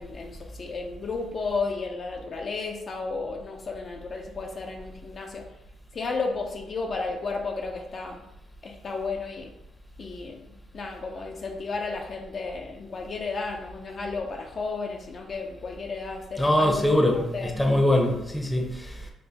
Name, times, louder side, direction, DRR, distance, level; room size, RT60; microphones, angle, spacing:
voice 1, 0.0-5.5 5.9-8.2 8.6-9.5 10.0-10.5 10.7-17.5, left 4 dB, 45° left, 0.4 m, -33 dB
voice 2, 16.4-19.1, left 1 dB, 10° left, 0.6 m, -23 dB
4.1 x 2.1 x 3.3 m
cardioid pair, 90°, 0 cm